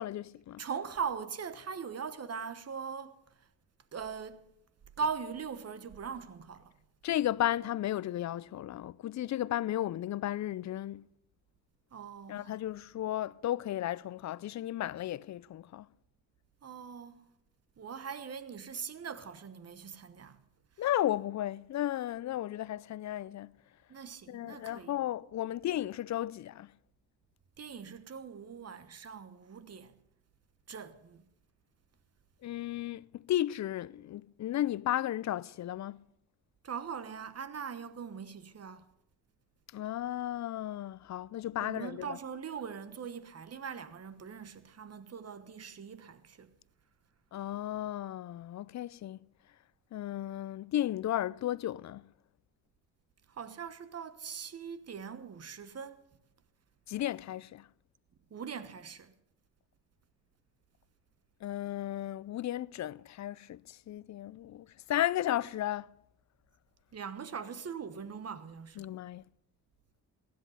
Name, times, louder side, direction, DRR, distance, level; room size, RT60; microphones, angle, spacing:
voice 1, 0.0-0.6 7.0-11.1 12.3-15.9 20.8-23.5 24.3-26.7 32.4-36.1 39.7-42.2 47.3-49.2 49.9-52.1 56.9-57.7 61.4-65.9 68.8-69.2, left 13 dB, 50° left, 0.4 m, -34 dB
voice 2, 0.6-3.5 3.9-4.4 5.0-6.7 11.9-12.6 16.6-17.3 17.8-20.4 20.8-20.9 23.9-25.0 27.6-29.9 30.7-31.3 36.6-38.8 41.6-46.6 53.3-56.0 56.9-57.0 58.3-59.1 66.9-68.9, right 6 dB, 40° right, 1.1 m, -41 dB
15.5 x 10.5 x 5.6 m
cardioid pair, 70°, 38 cm